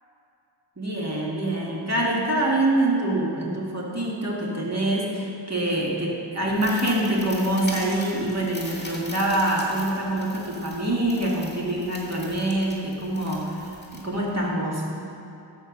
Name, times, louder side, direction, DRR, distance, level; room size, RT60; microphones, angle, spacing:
voice 1, 0.8-14.9, right 1 dB, 35° right, -4 dB, 2.2 m, -25 dB
sound 1, 6.5-14.5, left 1 dB, 20° left, 2.1 m, -41 dB
13.0 x 4.7 x 6.2 m, 2.8 s
wide cardioid pair, 55°, 44 cm